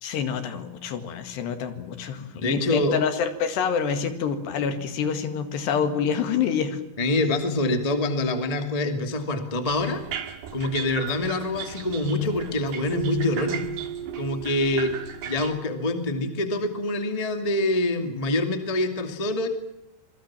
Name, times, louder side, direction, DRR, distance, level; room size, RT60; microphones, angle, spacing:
voice 1, 0.0-6.8, left 7 dB, 65° left, 9 dB, 4.0 m, -27 dB
voice 2, 2.2-3.0 7.0-10.0 10.5-13.6 14.1-14.9 15.2-19.5, left 2 dB, 20° left, 7 dB, 0.9 m, -25 dB
sound 1, 9.7-15.5, right 8 dB, 65° right, 3.6 m, -37 dB
Keyboard (musical), 12.9-15.7, right 10 dB, 85° right, 3.7 m, -35 dB
27.0 x 21.5 x 7.5 m, 0.86 s
omnidirectional pair, 5.5 m